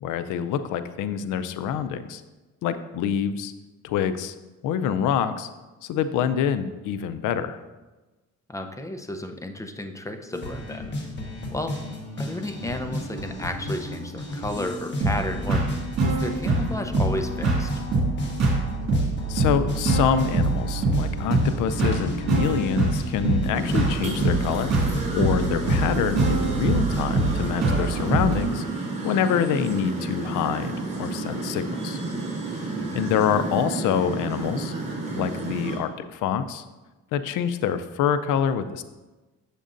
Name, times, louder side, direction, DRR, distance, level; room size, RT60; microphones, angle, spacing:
voice 1, 0.0-2.2 2.6-3.5 3.8-4.4 4.6-5.5 5.8-7.6 19.3-32.0 32.5-32.6 32.9-34.7 35.1-36.6 37.1-38.8, left 8 dB, 90° left, 11 dB, 0.5 m, -26 dB
voice 2, 8.5-10.9 11.5-11.7 12.2-17.7 32.8-33.1, left 1 dB, 10° left, 5 dB, 0.6 m, -33 dB
sound 1, 10.3-27.7, left 1 dB, 35° left, 1.3 m, -34 dB
sound 2, 15.0-28.4, right 3 dB, 55° right, 2.3 m, -24 dB
sound 3, 23.5-35.8, right 3 dB, 20° right, 2.3 m, -31 dB
7.2 x 6.7 x 2.5 m, 1.2 s
cardioid pair, 90°, 30 cm